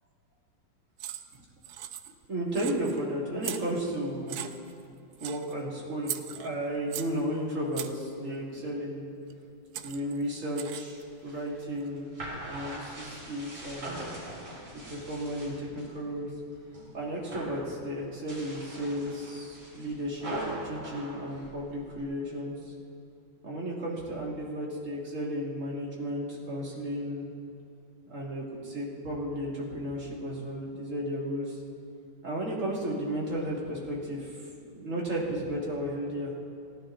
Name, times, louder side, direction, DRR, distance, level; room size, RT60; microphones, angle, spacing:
sound 1, 1.0-1.4 1.6-2.3 2.5-3.0 3.4-4.0 4.3-4.8 5.2-5.5 6.0-7.2 7.7-8.1 9.3-9.4 9.7-11.0, right 11 dB, 80° right, 0.8 m, -39 dB
voice 1, 2.3-4.5 5.2-9.1 9.7-12.1 12.4-14.0 14.7-16.3 16.9-22.7 23.4-27.3 28.1-31.6 32.2-36.3, equal, 40° right, -4 dB, 2.5 m, -34 dB
sound 2, 11.0-15.9 16.3-16.9 17.1-17.6 18.1-22.0, right 1 dB, 65° right, 4.6 m, -41 dB
17.5 x 11.0 x 3.7 m, 2.6 s
omnidirectional pair, 2.2 m